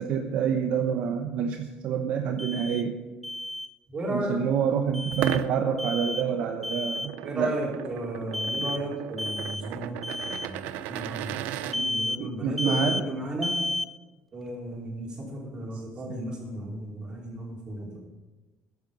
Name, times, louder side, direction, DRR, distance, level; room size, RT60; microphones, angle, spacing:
voice 1, 0.0-3.0 4.1-7.5 8.6-8.7 11.7-13.0 16.1-16.2, right 7 dB, 60° right, 5 dB, 0.9 m, -28 dB
Alarm, 2.4-2.8 3.2-3.7 4.9-5.4 5.8-6.3 6.6-7.1 8.3-8.8 9.2-9.7 10.0-10.5 11.7-12.2 12.6-13.1 13.4-13.9, left 1 dB, 5° left, 0.6 m, -31 dB
voice 2, 3.9-4.4 7.2-10.0 10.2-13.5 14.3-18.0, right 1 dB, 30° right, -3 dB, 4.5 m, -34 dB
sound 1, 5.1-11.8, right 12 dB, 75° right, 0.6 m, -36 dB
14.5 x 10.5 x 5.4 m, 1.2 s
cardioid pair, 140°, 3 cm